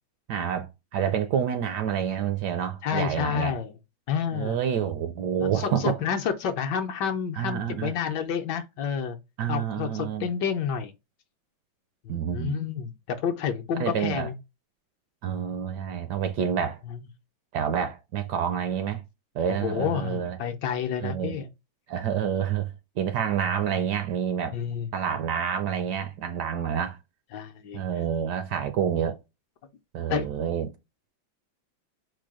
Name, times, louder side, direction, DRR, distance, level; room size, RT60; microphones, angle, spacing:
voice 1, 0.3-3.5 4.3-6.0 7.4-7.9 9.4-10.3 12.1-12.6 13.8-14.3 15.2-16.8 17.5-19.0 19.3-20.4 21.0-21.4 21.9-24.6 24.9-27.0 27.7-29.2 29.9-30.7, right 8 dB, 70° right, 1.0 m, -28 dB
voice 2, 2.8-3.7 4.1-4.6 5.4-9.2 9.5-10.9 12.0-14.4 16.9-17.0 19.5-21.5 24.5-24.9 27.3-27.8 30.1-30.3, left 7 dB, 70° left, 1.2 m, -29 dB
4.5 x 2.2 x 4.7 m
omnidirectional pair, 2.1 m